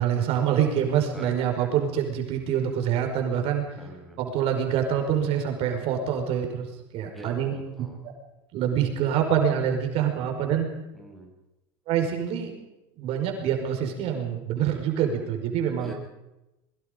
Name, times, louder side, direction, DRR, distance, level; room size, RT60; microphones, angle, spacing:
voice 1, 0.0-3.6 4.2-6.7 6.9-7.5 8.5-10.7 11.9-12.5 13.0-15.9, right 9 dB, 55° right, 4 dB, 5.3 m, -25 dB
voice 2, 1.1-1.7 3.7-4.2 7.1-8.0 10.9-11.3 15.8-15.9, right 1 dB, ahead, 2 dB, 7.6 m, -44 dB
23.0 x 22.5 x 5.3 m, 0.94 s
supercardioid pair, 105°, 12 cm